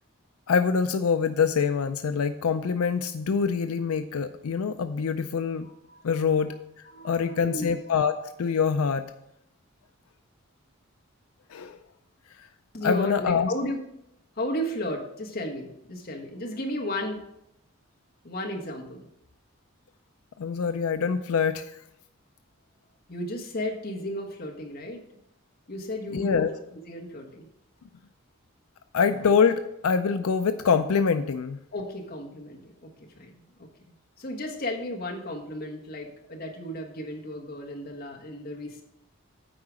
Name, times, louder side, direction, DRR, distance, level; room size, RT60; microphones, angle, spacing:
voice 1, 0.5-5.7 6.0-6.6 7.0-8.1 8.4-9.0 11.5-11.8 12.8-13.5 20.4-21.7 26.1-26.5 28.9-31.6, left 6 dB, 90° left, 9 dB, 0.4 m, -24 dB
voice 2, 5.6-6.3 6.9-8.0 12.7-13.8 14.3-17.2 18.2-19.1 23.1-25.0 25.7-26.5 26.9-27.5 31.7-32.9 33.2-33.7 34.2-38.8, left 1 dB, 45° left, 0 dB, 1.4 m, -34 dB
8.5 x 4.8 x 6.3 m, 0.79 s
head